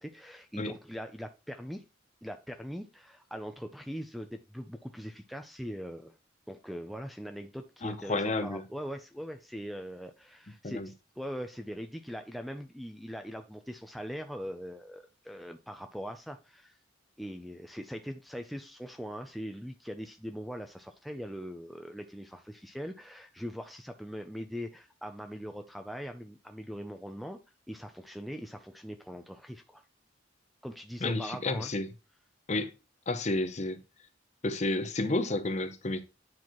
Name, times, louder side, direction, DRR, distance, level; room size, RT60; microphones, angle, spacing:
voice 1, 0.0-1.8 2.2-6.2 6.5-16.8 17.2-27.4 27.7-29.8 30.6-31.7, equal, ahead, 0.4 m, -41 dB
voice 2, 7.8-8.6 10.6-10.9 31.0-31.9 32.5-32.7 33.1-33.8 34.4-36.0, left 2 dB, 35° left, 0.7 m, -31 dB
9.6 x 4.5 x 3.0 m
head